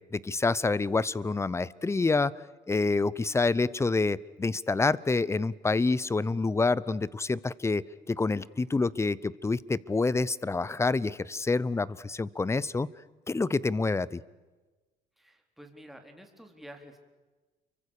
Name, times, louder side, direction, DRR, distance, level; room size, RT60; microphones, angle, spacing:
voice 1, 0.1-2.3 2.7-12.9 13.3-14.2, left 3 dB, 15° left, 21 dB, 0.8 m, -27 dB
voice 2, 15.2-17.0, equal, ahead, 4 dB, 4.0 m, -49 dB
29.5 x 24.0 x 6.7 m, 1.2 s
cardioid pair, 110°, 17 cm